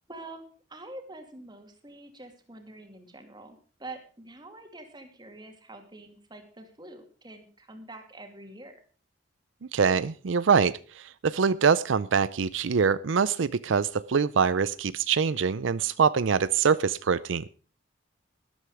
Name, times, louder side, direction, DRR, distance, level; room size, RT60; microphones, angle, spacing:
voice 1, 0.1-8.7, right 2 dB, 25° right, 5 dB, 2.6 m, -46 dB
voice 2, 9.7-17.5, right 6 dB, 85° right, 16 dB, 0.5 m, -24 dB
13.0 x 11.5 x 4.8 m, 0.37 s
head